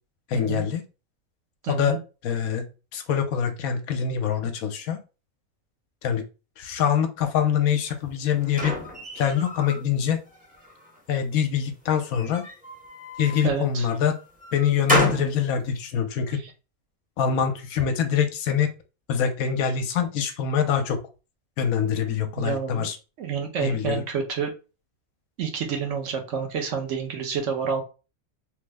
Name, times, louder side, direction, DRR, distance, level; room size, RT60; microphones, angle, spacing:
voice 1, 0.3-0.8 1.7-2.0 2.2-2.6 2.9-5.0 6.0-6.2 6.6-8.7 9.2-10.2 11.1-12.4 13.2-14.1 14.5-16.4 17.2-18.7 19.1-21.0 21.6-23.0 23.6-24.0, left 8 dB, 80° left, 7 dB, 1.0 m, -24 dB
voice 2, 1.6-2.0 13.4-13.9 22.4-22.9 23.2-24.5 25.4-27.8, right 6 dB, 65° right, 3 dB, 1.0 m, -28 dB
sound 1, 7.9-9.8 10.3-11.0 12.0-13.5 14.0-15.4, equal, 10° right, 0.6 m, -30 dB
3.2 x 2.0 x 3.3 m, 0.32 s
omnidirectional pair, 1.5 m